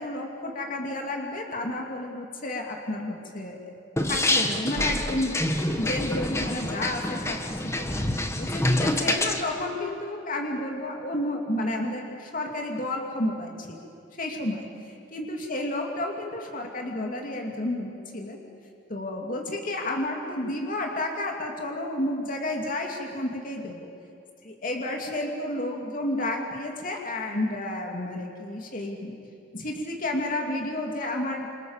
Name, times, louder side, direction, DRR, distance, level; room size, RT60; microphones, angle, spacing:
voice 1, 0.0-3.7 4.1-5.3 5.8-8.0 8.4-13.9 14.2-14.7 15.1-18.4 18.9-23.9 24.4-29.2 29.5-31.5, left 1 dB, 45° left, 1 dB, 2.7 m, -31 dB
sound 1, 4.0-9.4, left 1 dB, 15° left, 1.6 m, -26 dB
28.5 x 27.5 x 7.4 m, 2.5 s
head